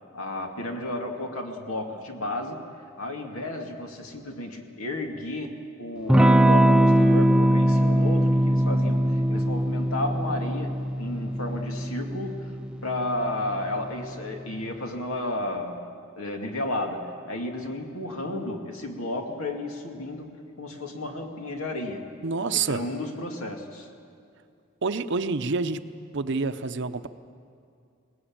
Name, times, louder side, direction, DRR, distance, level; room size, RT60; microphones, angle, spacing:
voice 1, 0.1-2.6 3.0-12.6 12.8-15.9 16.2-20.3 20.6-22.0 22.5-23.9, left 1 dB, 80° left, 3 dB, 2.4 m, -33 dB
Electric guitar / Strum, 6.1-14.4, right 1 dB, 5° right, 0.5 m, -22 dB
voice 2, 22.2-22.8 24.8-25.8 26.1-27.1, right 4 dB, 55° right, 11 dB, 0.7 m, -27 dB
20.5 x 19.5 x 8.8 m, 2.4 s
head